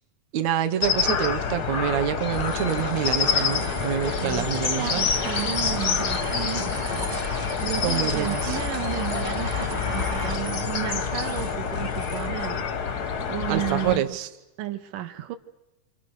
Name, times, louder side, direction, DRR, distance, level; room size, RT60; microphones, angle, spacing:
voice 1, 0.3-5.1 7.8-8.6 13.5-14.3, right 10 dB, 65° right, 6 dB, 2.2 m, -27 dB
sound 1, 0.8-14.0, left 6 dB, 60° left, 1.0 m, -27 dB
sound 2, 2.3-12.3, left 1 dB, 20° right, 0.5 m, -34 dB
voice 2, 4.8-14.2 14.6-15.4, right 13 dB, 85° right, 8 dB, 2.8 m, -33 dB
29.5 x 26.5 x 6.4 m, 0.98 s
omnidirectional pair, 3.7 m